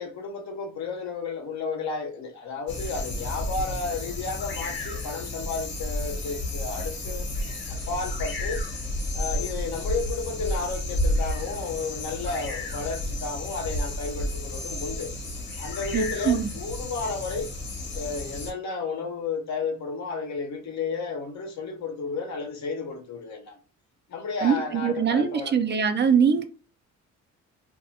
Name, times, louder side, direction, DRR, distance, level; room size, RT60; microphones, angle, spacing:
voice 1, 0.0-7.3 7.7-8.6 9.1-15.1 15.6-17.5 17.9-23.6 24.1-25.5, left 4 dB, 65° left, 0.9 m, -32 dB
sound 1, 2.7-18.5, left 1 dB, 40° left, 1.0 m, -31 dB
voice 2, 15.9-16.5 24.4-26.4, right 7 dB, 35° right, 0.4 m, -23 dB
2.5 x 2.3 x 2.7 m
cardioid pair, 90°, 30 cm